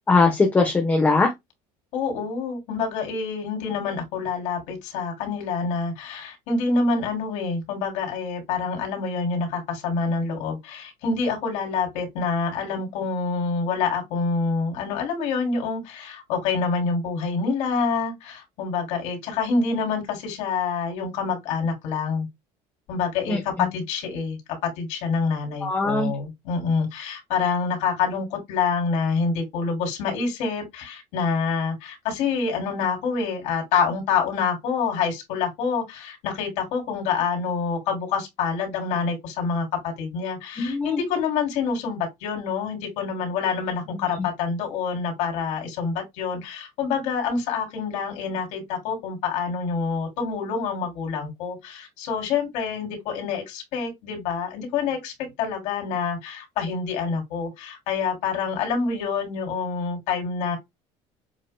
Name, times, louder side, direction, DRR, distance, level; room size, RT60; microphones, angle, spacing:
voice 1, 0.1-1.3 23.3-23.4 25.6-26.1 40.6-40.9, left 3 dB, 15° left, 0.9 m, -20 dB
voice 2, 1.9-22.3 22.9-60.6, left 5 dB, 70° left, 3.3 m, -27 dB
7.6 x 2.8 x 2.2 m
cardioid pair, 170°, 13 cm